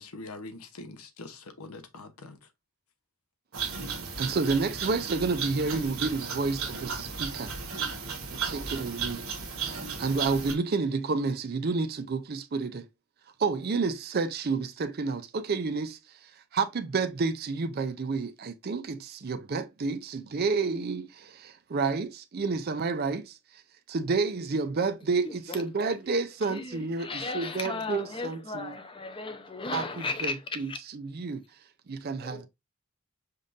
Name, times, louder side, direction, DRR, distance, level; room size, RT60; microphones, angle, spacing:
voice 1, 0.0-2.4, left 2 dB, 85° left, 0.9 m, -43 dB
sound 1, 3.5-10.5, right 5 dB, 70° right, 1.4 m, -35 dB
voice 2, 4.2-7.5 8.3-9.2 10.0-12.9 13.4-23.6 23.9-28.7 29.7-31.4 31.9-32.5, right 4 dB, 45° right, 0.5 m, -30 dB
voice 3, 25.2-25.6 26.4-30.8 32.2-32.5, left 3 dB, 25° left, 0.6 m, -36 dB
5.2 x 2.5 x 3.9 m
head